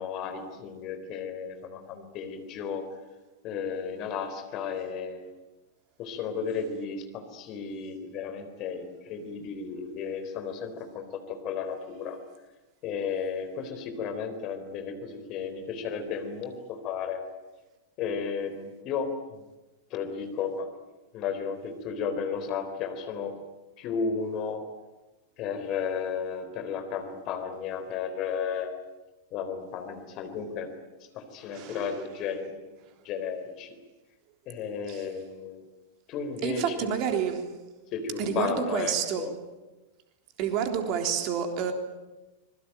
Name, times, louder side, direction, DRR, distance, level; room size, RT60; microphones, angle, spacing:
voice 1, 0.0-2.9 3.4-5.3 6.0-12.2 12.8-17.3 18.0-19.2 19.9-20.7 21.1-23.4 23.8-24.7 25.4-28.8 29.3-30.7 31.1-32.7 33.0-33.8 34.5-35.6 36.1-36.9 37.9-39.3, left 6 dB, 40° left, 8 dB, 3.9 m, -33 dB
voice 2, 31.5-31.9 34.9-35.1 36.4-37.5 38.2-39.3 40.4-41.7, right 8 dB, 40° right, 5 dB, 3.6 m, -29 dB
25.5 x 22.0 x 9.1 m, 1.1 s
figure-of-eight pair, 90°, 0 cm